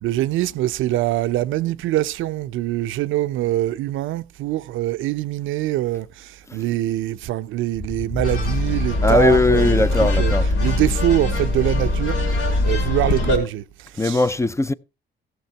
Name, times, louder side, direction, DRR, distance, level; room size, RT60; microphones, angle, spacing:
voice 1, 0.0-10.3 10.6-12.2 12.6-13.6 14.0-14.2, right 14 dB, 85° right, 0.5 m, -24 dB
sound 1, 8.2-13.4, left 2 dB, 90° left, 4.2 m, -21 dB
voice 2, 9.0-10.5 14.0-14.7, left 2 dB, 15° left, 0.5 m, -19 dB
15.0 x 6.5 x 4.5 m
cardioid pair, 90°, 20 cm